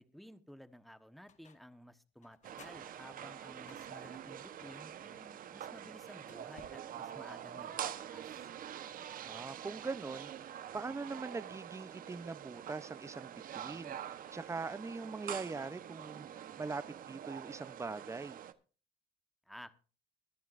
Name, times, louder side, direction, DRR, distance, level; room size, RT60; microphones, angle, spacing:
voice 1, 0.0-8.2 19.5-19.7, equal, ahead, 1.2 m, -54 dB
sound 1, 1.3-1.8 2.2-4.3 6.0-6.9, left 7 dB, 45° left, 1.7 m, -64 dB
sound 2, 2.4-18.5, right 10 dB, 55° right, 1.1 m, -46 dB
Fireworks, 6.5-8.7, left 6 dB, 80° left, 3.9 m, -63 dB
voice 2, 9.2-18.4, right 4 dB, 15° right, 0.8 m, -42 dB
23.0 x 10.5 x 2.6 m
cardioid pair, 110°, 17 cm